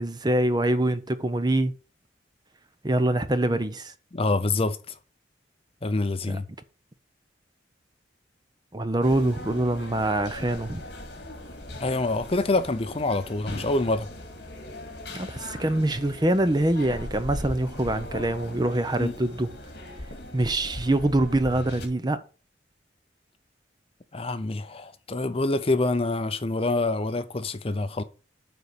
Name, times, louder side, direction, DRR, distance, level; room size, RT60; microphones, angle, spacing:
voice 1, 0.0-1.7 2.8-3.9 6.3-6.4 8.7-10.8 15.1-19.5 20.3-22.2, right 1 dB, 25° right, 0.7 m, -24 dB
voice 2, 4.1-4.9 5.8-6.5 11.8-14.1 19.0-19.1 24.1-28.0, left 2 dB, 30° left, 0.6 m, -26 dB
sound 1, 9.0-21.9, left 1 dB, 60° left, 2.1 m, -39 dB
9.1 x 4.1 x 6.8 m
head